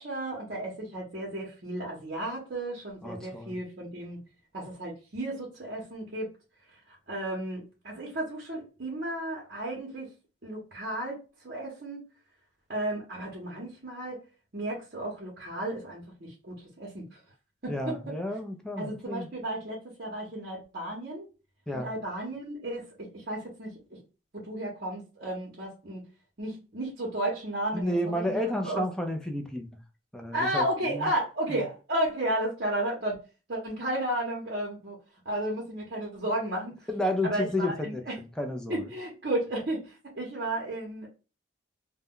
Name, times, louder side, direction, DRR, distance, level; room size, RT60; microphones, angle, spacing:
voice 1, 0.0-4.2 4.5-6.3 7.1-10.1 10.4-11.2 11.4-12.0 12.7-14.2 14.5-17.2 17.6-18.0 18.8-21.3 21.7-23.7 24.3-26.0 26.4-27.9 28.3-28.4 28.6-28.8 30.3-33.2 33.5-35.0 35.2-36.7 37.2-38.1 38.7-41.1, right 1 dB, 50° right, 0.7 m, -33 dB
voice 2, 3.0-3.6 17.7-19.3 21.7-21.9 27.7-29.8 30.1-31.1 31.5-31.6 36.9-38.9, left 1 dB, 5° left, 0.3 m, -31 dB
2.2 x 2.1 x 3.5 m
head